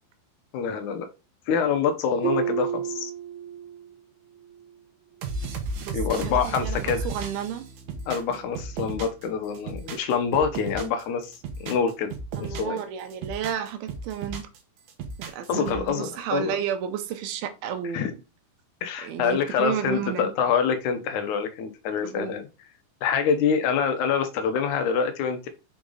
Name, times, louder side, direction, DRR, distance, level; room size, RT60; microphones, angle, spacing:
voice 1, 0.5-1.1 1.5-3.1 5.9-7.1 8.1-12.1 12.4-12.8 15.5-16.6 17.9-18.1 18.8-22.4 23.0-25.5, left 6 dB, 75° left, 1.9 m, -26 dB
Harp, 2.2-4.0 4.3-4.8 5.3-5.4, right 9 dB, 40° right, 2.0 m, -31 dB
sound 1, 5.2-9.3 9.5-11.0 11.3-12.8 13.1-14.6 14.9-15.9, right 3 dB, 65° right, 2.0 m, -34 dB
voice 2, 5.8-7.7 8.3-8.4 8.8-8.9 12.3-14.5 15.2-18.1 19.0-20.3 22.0-22.3, right 9 dB, 80° right, 2.6 m, -32 dB
6.5 x 4.0 x 3.8 m
omnidirectional pair, 4.5 m